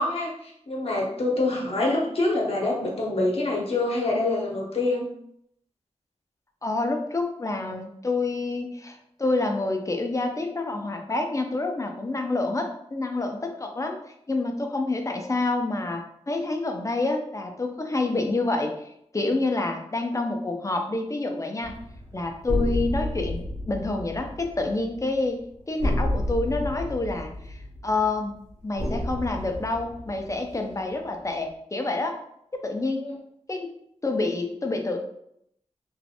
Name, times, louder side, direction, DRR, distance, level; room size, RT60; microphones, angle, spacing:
voice 1, 0.0-5.1 33.0-33.1, left 2 dB, 55° left, -3 dB, 0.9 m, -26 dB
voice 2, 6.6-16.0 16.3-18.7 19.1-21.7 22.1-25.4 25.7-28.3 28.6-32.2 32.5-33.0 33.5-33.7 34.0-35.0, left 2 dB, 25° left, 3 dB, 0.5 m, -28 dB
sound 1, 21.6-31.0, left 1 dB, 80° right, 1.0 m, -31 dB
3.1 x 2.5 x 2.8 m, 0.72 s
wide cardioid pair, 75°, 12 cm